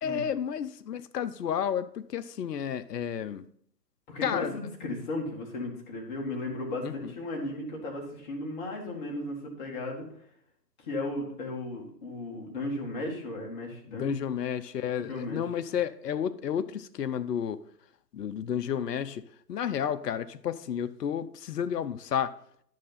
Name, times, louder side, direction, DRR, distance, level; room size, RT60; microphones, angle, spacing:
voice 1, 0.0-3.4 4.2-4.6 6.8-7.1 13.9-17.6 18.1-19.2 19.5-22.3, left 8 dB, 70° left, 12 dB, 0.7 m, -31 dB
voice 2, 4.1-10.0 10.8-14.2 15.1-15.4, left 2 dB, 30° left, -1 dB, 2.0 m, -35 dB
10.5 x 6.5 x 4.1 m, 0.65 s
hypercardioid pair, 150°, 50 cm